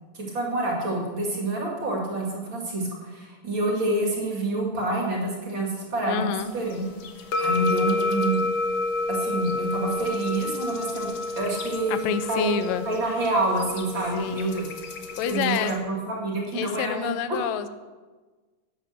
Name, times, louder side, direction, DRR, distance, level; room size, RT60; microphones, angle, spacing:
voice 1, 0.1-6.9 7.4-8.4 9.1-12.5 12.9-14.7 15.2-17.4, right 2 dB, 40° right, -1 dB, 2.8 m, -27 dB
voice 2, 6.1-6.5 11.9-12.9 14.2-14.5 15.2-15.7 16.5-17.7, left 9 dB, 85° left, 12 dB, 2.3 m, -28 dB
sound 1, 6.4-15.8, left 2 dB, 60° left, 1.8 m, -30 dB
11.5 x 9.1 x 6.7 m, 1.3 s
omnidirectional pair, 3.9 m